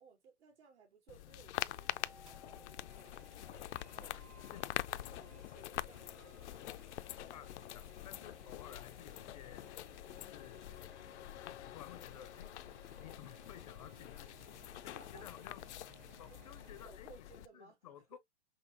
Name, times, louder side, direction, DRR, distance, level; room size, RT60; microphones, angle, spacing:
voice 1, 0.0-4.5 4.9-6.9 7.2-7.5 8.4-8.7 14.9-15.5 16.3-18.1, right 6 dB, 80° right, 3.1 m, -62 dB
sound 1, 1.1-17.5, left 14 dB, 85° left, 0.5 m, -46 dB
sound 2, 1.7-9.7, equal, 20° right, 0.8 m, -66 dB
sound 3, 2.3-16.9, right 7 dB, 45° right, 0.9 m, -63 dB
voice 2, 7.3-9.7 10.1-10.7 11.4-12.5 13.0-14.4 14.8-15.6 16.2-18.2, left 10 dB, 35° left, 0.5 m, -55 dB
5.8 x 2.8 x 2.7 m
hypercardioid pair, 165°, 34 cm